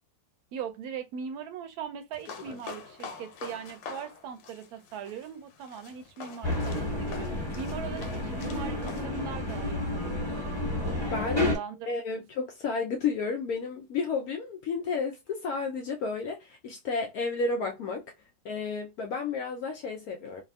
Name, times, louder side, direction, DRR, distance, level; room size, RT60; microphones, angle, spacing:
voice 1, 0.5-10.6 11.1-11.9, right 7 dB, 70° right, 1.0 m, -40 dB
sound 1, 2.1-9.1, left 5 dB, 90° left, 1.3 m, -45 dB
sound 2, 6.4-11.6, left 1 dB, 15° left, 1.2 m, -31 dB
voice 2, 11.1-11.6 11.9-18.0 18.4-20.4, left 4 dB, 70° left, 0.9 m, -31 dB
3.3 x 2.1 x 2.3 m
omnidirectional pair, 1.9 m